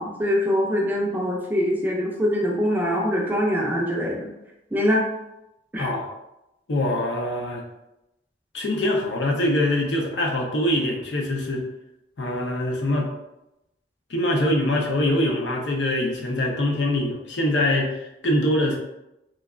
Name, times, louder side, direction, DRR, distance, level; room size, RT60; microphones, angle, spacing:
voice 1, 0.0-4.3 4.7-5.0 5.7-5.9, equal, 10° right, -2 dB, 0.4 m, -23 dB
voice 2, 5.7-6.1 6.7-7.6 8.5-11.6 12.2-13.1 14.1-18.8, left 1 dB, 75° left, 0 dB, 0.6 m, -23 dB
3.2 x 2.3 x 2.3 m, 0.90 s
head